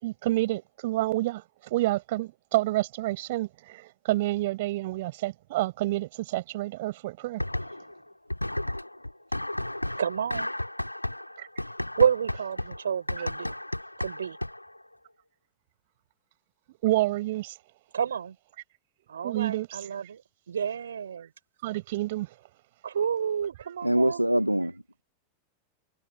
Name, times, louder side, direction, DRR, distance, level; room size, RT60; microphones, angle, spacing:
voice 1, 0.0-7.4 11.4-11.5 16.8-17.5 19.2-19.7 21.6-22.3, right 17 dB, 55° right, 7.2 m, -28 dB
sound 1, 7.4-8.0 8.3-14.8, left 1 dB, 85° left, 2.6 m, -33 dB
voice 2, 10.0-10.5 12.0-13.5 14.0-14.4 17.9-18.4 19.1-20.2 20.5-21.3 22.8-24.2, right 7 dB, 70° right, 6.3 m, -29 dB
voice 3, 23.8-25.0, equal, 90° right, 1.4 m, -24 dB
figure-of-eight pair, 90°, 0 cm